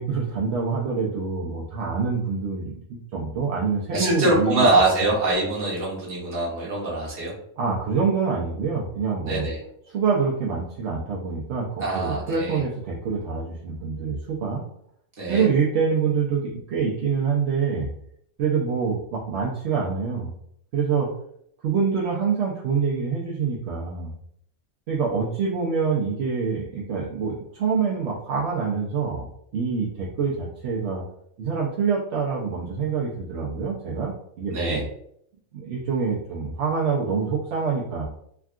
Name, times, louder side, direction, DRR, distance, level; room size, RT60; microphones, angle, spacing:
voice 1, 0.0-4.7 5.0-5.1 7.6-9.5 9.9-14.6 15.3-17.9 18.4-20.3 20.7-21.1 21.6-24.1 24.9-29.3 29.5-31.0 31.4-34.8 35.5-38.1, right 5 dB, 65° right, -4 dB, 0.7 m, -26 dB
voice 2, 3.9-7.3 9.2-9.6 11.8-12.6 15.2-15.5 34.5-34.8, right 2 dB, 45° right, -5 dB, 1.2 m, -23 dB
3.5 x 2.2 x 2.3 m, 0.69 s
omnidirectional pair, 1.4 m